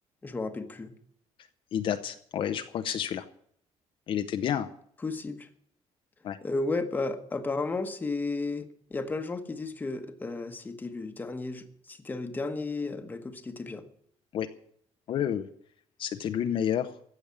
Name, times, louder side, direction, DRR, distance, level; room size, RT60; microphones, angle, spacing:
voice 1, 0.2-0.9 5.0-5.5 6.4-13.8, left 3 dB, 15° left, 7 dB, 1.3 m, -33 dB
voice 2, 1.7-3.2 4.1-4.7 6.2-6.4 14.3-14.5 15.1-15.5 16.0-16.9, left 9 dB, 50° left, 7 dB, 0.8 m, -29 dB
15.5 x 7.1 x 9.7 m, 0.64 s
cardioid pair, 165°, 12 cm